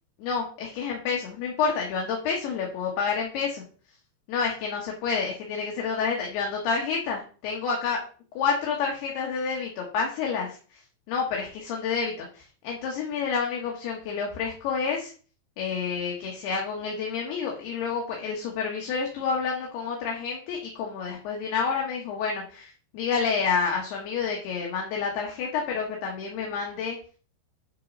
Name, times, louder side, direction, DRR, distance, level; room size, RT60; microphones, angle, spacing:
voice 1, 0.2-3.6 4.3-8.0 8.3-10.8 11.1-15.1 15.6-27.0, left 5 dB, 70° left, -1 dB, 3.1 m, -29 dB
10.5 x 3.9 x 5.3 m, 0.40 s
omnidirectional pair, 5.4 m